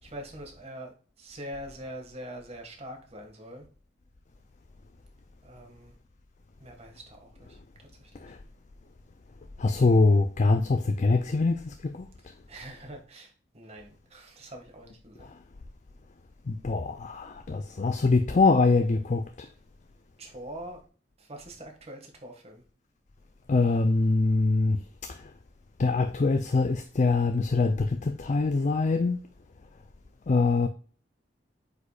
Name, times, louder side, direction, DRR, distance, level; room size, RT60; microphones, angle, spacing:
voice 1, 0.0-3.7 5.4-5.9 6.6-8.3 12.5-15.3 20.2-20.8 21.2-22.6, right 1 dB, 35° right, 1.9 m, -44 dB
voice 2, 9.6-12.1 16.5-19.5 23.5-24.8 25.0-25.2 25.8-29.2 30.3-30.7, left 3 dB, 40° left, 0.5 m, -24 dB
8.2 x 5.1 x 2.4 m
head